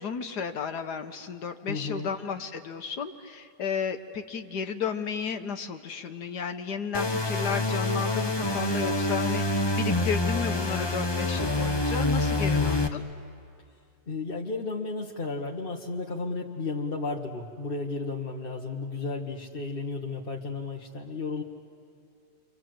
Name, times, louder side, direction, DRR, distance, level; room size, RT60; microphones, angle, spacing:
voice 1, 0.0-13.0, left 6 dB, 65° left, 7 dB, 1.5 m, -33 dB
voice 2, 1.7-2.1 12.4-12.8 14.1-21.4, left 3 dB, 35° left, -1 dB, 1.3 m, -33 dB
sound 1, 6.9-12.9, left 2 dB, 20° left, 0.9 m, -26 dB
30.0 x 25.5 x 7.8 m, 2.5 s
omnidirectional pair, 1.9 m